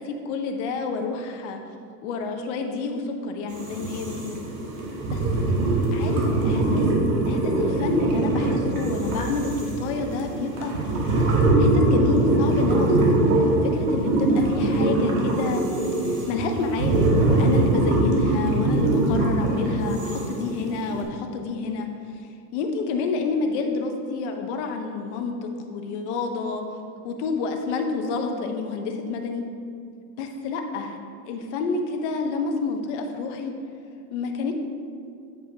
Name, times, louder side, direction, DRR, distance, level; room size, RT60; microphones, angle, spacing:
voice 1, 0.0-1.6 2.0-4.4 5.0-5.5 5.9-6.9 7.3-10.8 11.0-13.2 13.6-15.7 16.3-21.9 22.5-26.6 27.0-29.4 30.2-31.0 31.3-33.5 34.1-34.5, left 4 dB, 50° left, 4 dB, 0.7 m, -29 dB
sound 1, 3.5-21.0, right 2 dB, 60° right, 1.3 m, -22 dB
7.6 x 5.3 x 2.7 m, 2.4 s
supercardioid pair, 165°, 46 cm